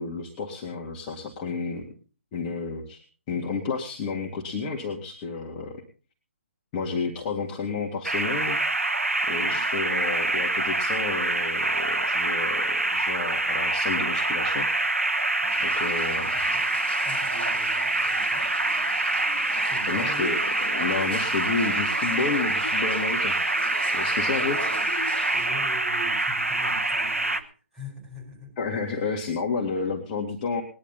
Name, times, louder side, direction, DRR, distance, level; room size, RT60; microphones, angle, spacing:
voice 1, 0.0-1.9 2.3-5.8 6.7-8.6 9.3-14.7 15.6-16.3 19.9-23.4 23.9-24.6 28.6-30.6, left 4 dB, 25° left, -1 dB, 2.0 m, -31 dB
sound 1, 8.0-27.4, right 2 dB, 90° right, 1.1 m, -26 dB
voice 2, 15.4-15.7 16.1-16.8 17.0-18.5 19.6-20.4 24.4-24.9 25.3-27.5 27.7-28.5 29.7-29.9, right 1 dB, 5° right, -4 dB, 4.7 m, -42 dB
sound 2, 15.5-25.5, left 4 dB, 50° left, 1.8 m, -42 dB
20.0 x 11.0 x 4.0 m, 0.37 s
figure-of-eight pair, 140°, 7 cm